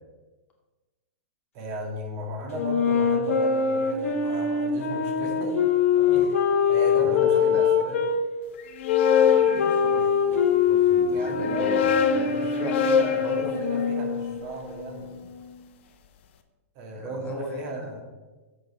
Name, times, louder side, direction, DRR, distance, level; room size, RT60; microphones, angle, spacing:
voice 1, 1.5-5.7 6.1-6.4 6.7-8.0 11.1-15.3 16.8-18.0, right 2 dB, 40° right, 1 dB, 2.0 m, -35 dB
sound 1, 2.5-8.2 8.9-14.4, left 7 dB, 75° left, 1.6 m, -23 dB
voice 2, 6.0-6.5 7.0-7.6 9.2-13.5 16.9-18.0, left 2 dB, 20° left, 0 dB, 1.4 m, -38 dB
sound 2, 8.6-10.5 11.3-15.4, left 7 dB, 55° left, 0.8 m, -27 dB
7.8 x 5.0 x 5.5 m, 1.2 s
hypercardioid pair, 140°, 8 cm